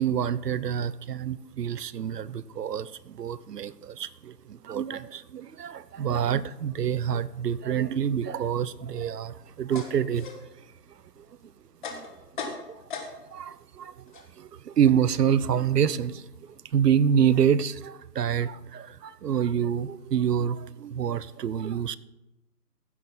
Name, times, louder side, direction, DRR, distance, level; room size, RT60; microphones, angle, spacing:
voice 1, 0.0-10.3 11.2-11.3 11.9-12.0 12.7-12.8 13.3-13.9 14.4-16.2 16.7-22.0, right 8 dB, 75° right, 18 dB, 0.7 m, -27 dB
sound 1, 9.4-13.5 13.8-16.7, left 5 dB, 30° left, 1.3 m, -42 dB
15.5 x 7.1 x 3.9 m, 1.0 s
hypercardioid pair, 155°, 48 cm